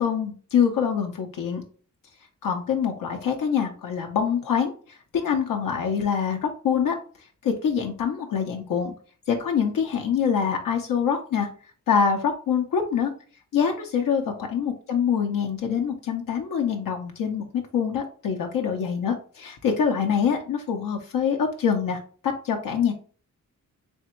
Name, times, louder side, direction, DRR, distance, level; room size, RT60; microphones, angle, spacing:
voice 1, 0.0-1.6 2.4-7.0 7.4-8.9 9.3-11.5 11.9-13.1 13.5-22.9, left 7 dB, 80° left, 3 dB, 0.7 m, -25 dB
3.5 x 3.3 x 3.0 m, 0.41 s
wide cardioid pair, 120°, 33 cm